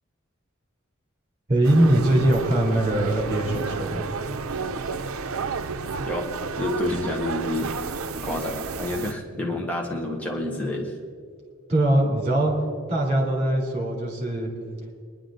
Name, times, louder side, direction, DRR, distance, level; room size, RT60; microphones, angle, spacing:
voice 1, 1.5-4.0 11.7-12.5 12.9-14.5, right 1 dB, 30° right, -1 dB, 3.4 m, -21 dB
sound 1, 1.6-9.1, right 5 dB, 85° right, 0.6 m, -31 dB
voice 2, 6.6-7.7 8.1-10.9, left 2 dB, 5° left, -1 dB, 1.1 m, -29 dB
21.5 x 11.0 x 3.9 m, 2.1 s
head